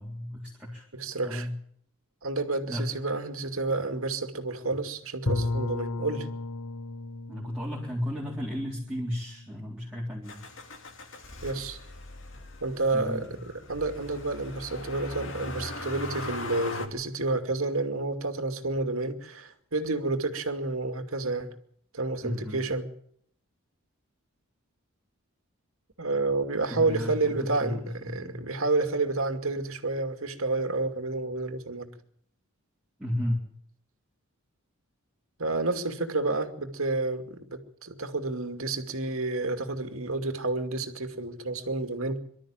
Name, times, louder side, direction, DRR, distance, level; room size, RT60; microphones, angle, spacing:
voice 1, 0.0-0.9 1.2-1.5 2.7-2.8 7.3-10.4 12.9-13.4 22.2-22.6 26.7-27.2 27.6-28.4 33.0-33.4, left 1 dB, 5° right, -6 dB, 3.8 m, -33 dB
voice 2, 0.9-1.5 2.2-6.3 11.4-11.8 12.6-21.5 21.9-22.9 26.0-31.9 35.4-42.2, right 3 dB, 70° right, 6 dB, 2.4 m, -30 dB
Bowed string instrument, 5.3-10.1, left 2 dB, 85° left, 1.4 m, -34 dB
Motor vehicle (road), 10.3-16.9, left 2 dB, 60° left, 2.7 m, -40 dB
24.0 x 13.0 x 8.9 m, 0.66 s
head